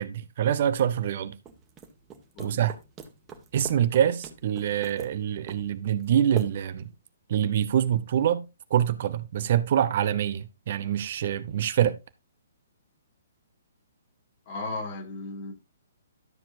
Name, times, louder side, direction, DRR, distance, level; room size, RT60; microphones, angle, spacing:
voice 1, 0.0-1.3 2.4-2.7 3.5-6.9 7.3-8.4 8.7-12.0, right 10 dB, 50° right, 0.8 m, -25 dB
sound 1, 1.5-6.9, right 6 dB, 20° right, 1.6 m, -43 dB
voice 2, 14.5-15.5, left 2 dB, 35° left, 2.5 m, -35 dB
12.5 x 7.3 x 2.6 m
figure-of-eight pair, 125°, 0 cm